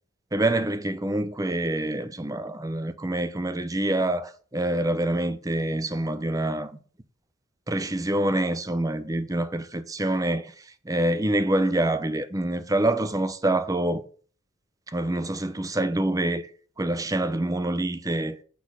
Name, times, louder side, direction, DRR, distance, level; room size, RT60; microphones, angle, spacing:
voice 1, 0.3-6.8 7.7-14.0 14.9-16.5 16.8-18.4, right 1 dB, 15° right, 0.6 m, -26 dB
8.2 x 4.4 x 7.3 m
head